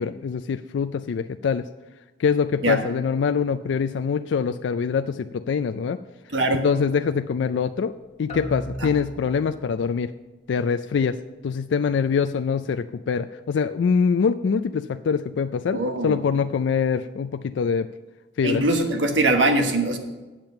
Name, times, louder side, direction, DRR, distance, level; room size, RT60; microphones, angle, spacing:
voice 1, 0.0-1.7 2.2-6.0 6.6-10.1 10.5-11.2 11.4-17.9 18.4-18.6, left 6 dB, 75° left, 8 dB, 0.3 m, -24 dB
voice 2, 6.3-6.7 8.8-8.9 15.7-16.2 18.4-20.0, right 2 dB, 85° right, 5 dB, 1.3 m, -22 dB
sound 1, 8.3-10.0, equal, 40° left, 1.5 m, -36 dB
8.9 x 7.5 x 6.6 m, 1.2 s
head